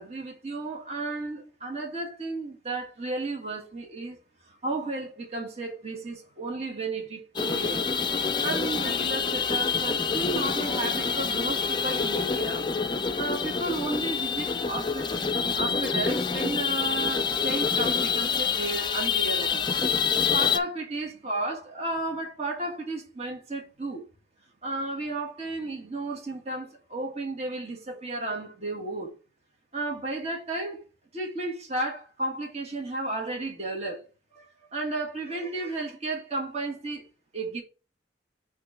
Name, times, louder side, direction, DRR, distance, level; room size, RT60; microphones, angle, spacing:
voice 1, 0.0-4.2 4.4-7.8 8.4-15.1 15.5-19.6 20.3-24.0 24.6-29.1 29.7-30.8 31.1-34.0 34.3-37.1 37.3-37.6, right 2 dB, 35° right, 1.5 m, -33 dB
sound 1, 7.4-20.6, left 5 dB, 25° left, 0.5 m, -27 dB
6.5 x 3.1 x 4.9 m
head